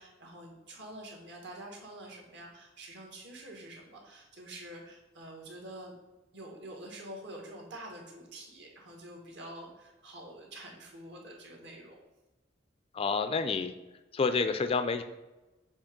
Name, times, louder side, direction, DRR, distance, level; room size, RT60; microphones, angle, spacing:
voice 1, 0.0-5.9 6.3-12.0, right 1 dB, 65° right, 0 dB, 1.6 m, -47 dB
voice 2, 12.9-13.7 14.1-15.0, left 4 dB, 30° left, 10 dB, 0.3 m, -28 dB
7.0 x 2.9 x 5.1 m, 1.1 s
head